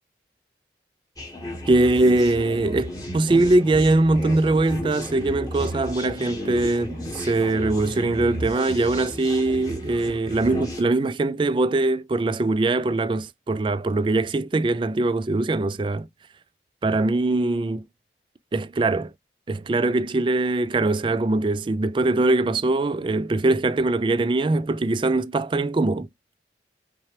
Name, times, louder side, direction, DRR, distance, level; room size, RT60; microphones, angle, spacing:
sound 1, 1.2-10.8, equal, 20° left, 1.2 m, -33 dB
voice 1, 1.7-16.1 16.8-17.8 18.5-19.1 19.5-26.1, right 2 dB, 25° right, 0.3 m, -22 dB
5.6 x 2.2 x 3.2 m
head